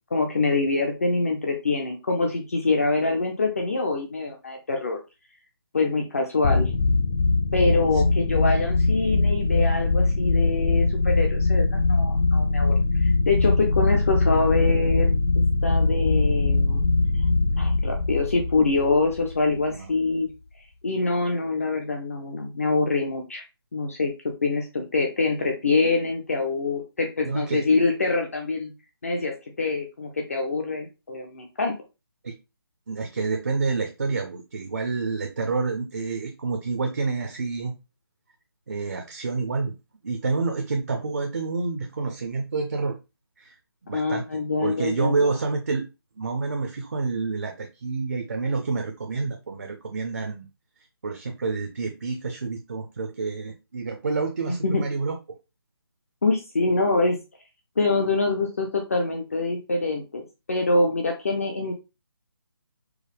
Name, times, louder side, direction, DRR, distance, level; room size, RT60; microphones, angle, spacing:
voice 1, 0.1-5.0 5.7-6.7 7.5-12.7 13.0-15.2 15.6-16.8 17.6-20.3 20.8-23.4 23.7-24.1 24.4-28.7 29.0-31.7 43.9-45.3 54.5-54.8 56.2-57.2 57.8-61.7, left 3 dB, 35° left, 3 dB, 0.5 m, -25 dB
sound 1, 6.4-19.8, left 3 dB, 90° left, 0.4 m, -22 dB
voice 2, 27.2-27.6 32.2-32.3 32.9-37.7 38.7-39.7 40.0-43.0 43.4-43.6 43.8-45.8 46.2-50.5 51.0-55.2, right 4 dB, 40° right, 4 dB, 0.5 m, -28 dB
4.6 x 2.0 x 3.2 m, 0.27 s
hypercardioid pair, 175°, 13 cm